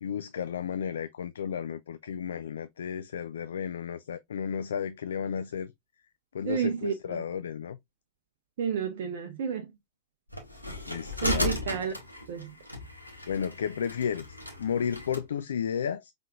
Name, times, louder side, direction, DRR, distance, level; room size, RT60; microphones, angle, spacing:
voice 1, 0.0-5.7 6.3-7.8 10.9-11.5 13.3-14.3 14.6-16.1, left 7 dB, 65° left, 0.3 m, -33 dB
voice 2, 6.4-7.2 8.6-9.7 11.2-11.9 12.3-12.5, right 7 dB, 55° right, 0.6 m, -31 dB
sound 1, 10.3-15.2, left 2 dB, 90° left, 1.0 m, -35 dB
5.5 x 3.4 x 2.3 m
figure-of-eight pair, 90°, 0 cm